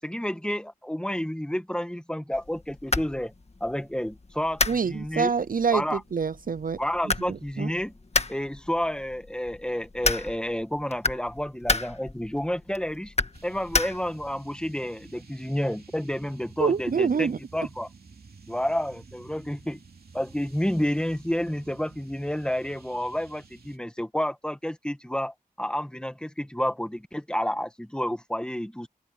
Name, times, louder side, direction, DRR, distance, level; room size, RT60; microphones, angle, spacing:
voice 1, 0.0-3.3 3.6-5.3 5.7-6.0 6.8-7.9 8.3-13.1 13.4-17.9 18.5-19.8 20.1-28.9, equal, 5° left, 1.8 m, -30 dB
sound 1, 2.3-14.4, left 3 dB, 45° left, 1.6 m, -32 dB
voice 2, 4.7-6.8 7.0-7.7 16.6-17.4, right 6 dB, 65° right, 0.5 m, -26 dB
sound 2, 13.3-23.8, right 4 dB, 90° right, 2.7 m, -51 dB
wide cardioid pair, 65°, 16 cm